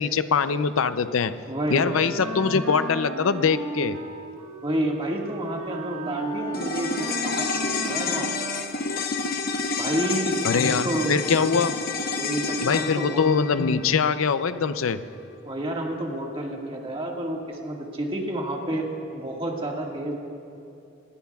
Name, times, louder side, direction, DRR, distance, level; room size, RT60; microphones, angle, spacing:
voice 1, 0.0-1.3 1.7-4.0 10.4-11.7 12.6-15.0, left 5 dB, 90° left, 12 dB, 0.5 m, -23 dB
voice 2, 1.5-1.9 4.6-8.3 9.8-11.2 12.2-13.3 15.4-18.9 19.1-20.2, right 1 dB, 25° right, -1 dB, 1.8 m, -29 dB
Wind instrument woodwind instrument, 1.7-8.9, right 2 dB, 90° right, 1.7 m, -36 dB
sound 1, 6.5-15.0 15.3-15.4, left 4 dB, 50° left, 0.8 m, -29 dB
26.5 x 17.5 x 2.4 m, 2.6 s
head